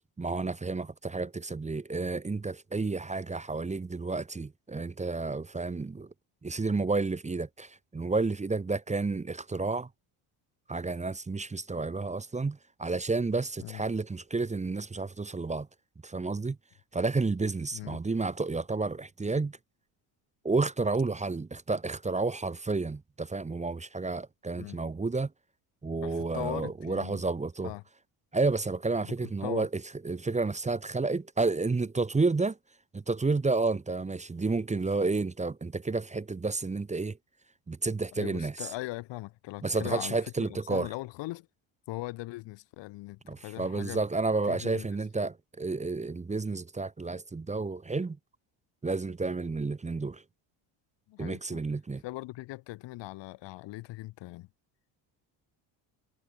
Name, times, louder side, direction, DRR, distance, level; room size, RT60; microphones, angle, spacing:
voice 1, 0.2-6.1 6.4-9.9 10.7-15.7 16.0-16.6 16.9-19.6 20.4-25.3 25.8-27.7 28.3-32.6 32.9-37.2 37.7-38.7 39.6-40.9 43.3-48.2 48.8-50.2 51.2-52.0, right 3 dB, 15° right, 0.9 m, -31 dB
voice 2, 26.0-27.2 27.6-27.8 29.0-29.1 29.4-29.7 38.1-41.5 41.9-44.0 44.5-44.9 51.1-51.6 52.0-54.5, left 19 dB, 60° left, 0.9 m, -40 dB
supercardioid pair, 80°, 48 cm